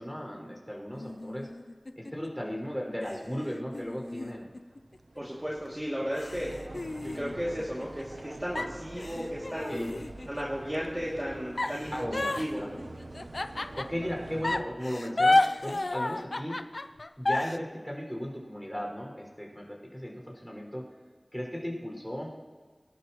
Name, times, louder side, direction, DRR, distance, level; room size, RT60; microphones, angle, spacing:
voice 1, 0.0-1.5 2.0-4.4 9.7-9.9 11.9-12.8 13.7-16.6 17.2-20.8 21.3-22.3, equal, ahead, -2 dB, 5.7 m, -36 dB
sound 1, 0.9-2.3 3.0-5.2 5.7-5.8 6.1-8.2 8.6-10.6 11.6-14.1 14.4-17.6, left 2 dB, 70° left, 0.5 m, -31 dB
sound 2, 3.8-14.6, right 2 dB, 85° right, 0.8 m, -46 dB
voice 2, 5.2-6.5 7.0-9.8 10.3-12.6, equal, 20° right, -6 dB, 2.6 m, -34 dB
25.0 x 12.0 x 3.1 m, 1.5 s
wide cardioid pair, 40°, 0 cm